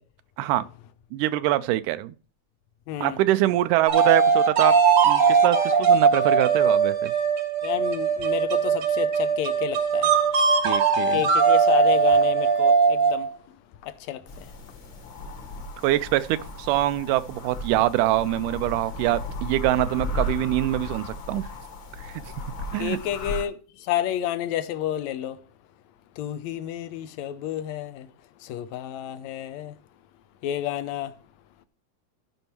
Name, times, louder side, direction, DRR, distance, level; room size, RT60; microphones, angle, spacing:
voice 1, 1.1-2.1 3.0-4.7 5.0-7.1 10.6-11.2 15.8-21.5 22.0-22.1 22.7-23.0, right 15 dB, 90° right, 2.2 m, -24 dB
voice 2, 2.9-3.2 7.6-10.1 11.1-13.3 13.8-14.2 22.8-25.4 26.2-28.1 28.4-29.7 30.4-31.1, left 11 dB, 75° left, 1.9 m, -30 dB
sound 1, 3.9-13.3, right 5 dB, 65° right, 1.1 m, -20 dB
sound 2, 14.3-23.4, left 2 dB, 45° left, 2.2 m, -35 dB
13.5 x 5.5 x 4.5 m
omnidirectional pair, 3.6 m